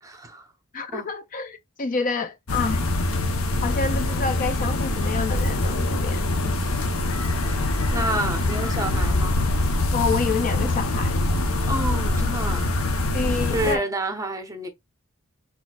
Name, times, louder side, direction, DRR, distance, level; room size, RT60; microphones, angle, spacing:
voice 1, 0.0-0.5 0.9-1.1 6.2-6.8 7.5-7.6 7.9-9.4 11.7-12.7 13.5-14.7, right 1 dB, 15° right, 0.9 m, -29 dB
voice 2, 0.7-2.9 3.6-6.2 9.9-11.2 13.1-13.8, left 4 dB, 40° left, 0.5 m, -28 dB
sound 1, 2.5-13.8, left 2 dB, 80° left, 0.9 m, -24 dB
4.3 x 4.2 x 2.4 m
head